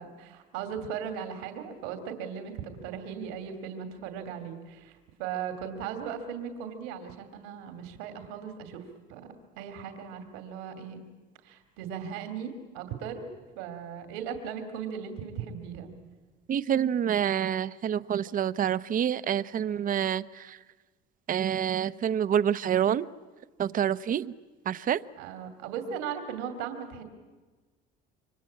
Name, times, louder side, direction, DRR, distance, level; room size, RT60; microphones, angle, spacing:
voice 1, 0.0-8.8 9.1-11.1 11.4-13.3 13.5-15.9 25.2-27.0, right 7 dB, 90° right, 2.7 m, -38 dB
voice 2, 16.5-20.6 21.3-23.1 23.6-24.3 24.7-25.0, right 9 dB, 40° right, 0.8 m, -27 dB
27.5 x 24.0 x 8.6 m
supercardioid pair, 100°, 21 cm